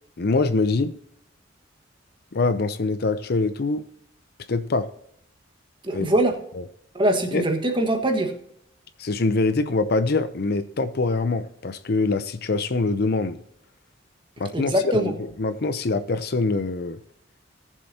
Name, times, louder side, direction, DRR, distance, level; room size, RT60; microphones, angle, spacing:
voice 1, 0.2-0.9 2.3-3.9 4.5-4.9 5.9-6.1 6.5-6.6 7.3-7.5 9.0-13.4 14.4-17.0, left 3 dB, 55° left, 0.6 m, -24 dB
voice 2, 5.8-6.4 6.9-8.3 14.5-15.1, right 1 dB, 25° right, 1.5 m, -22 dB
18.5 x 7.4 x 2.8 m
head